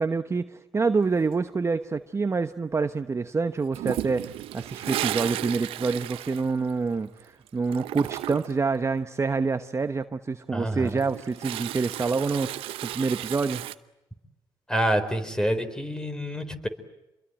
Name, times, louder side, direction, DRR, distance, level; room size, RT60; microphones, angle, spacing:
voice 1, 0.0-4.3 4.5-13.6, right 4 dB, 30° right, 9 dB, 1.0 m, -27 dB
Toilet flush, 3.7-7.2 7.5-8.7 10.7-13.8, right 14 dB, 90° right, 0.9 m, -34 dB
voice 2, 10.5-11.0 14.7-16.7, equal, 10° left, 10 dB, 4.2 m, -27 dB
28.0 x 22.5 x 9.0 m, 0.93 s
cardioid pair, 75°, 9 cm